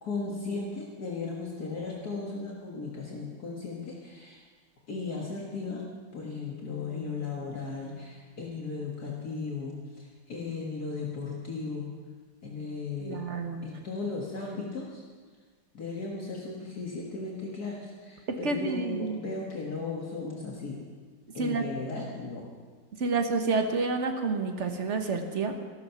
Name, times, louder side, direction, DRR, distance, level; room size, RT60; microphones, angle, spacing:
voice 1, 0.0-4.4 4.9-5.8 6.1-11.9 12.4-13.2 13.6-15.0 15.7-20.8 21.3-22.4, left 4 dB, 55° left, -3 dB, 2.2 m, -36 dB
voice 2, 13.0-13.6 18.3-19.2 21.4-21.6 23.0-25.6, right 4 dB, 45° right, 5 dB, 1.4 m, -29 dB
14.0 x 13.5 x 5.8 m, 1.5 s
omnidirectional pair, 2.0 m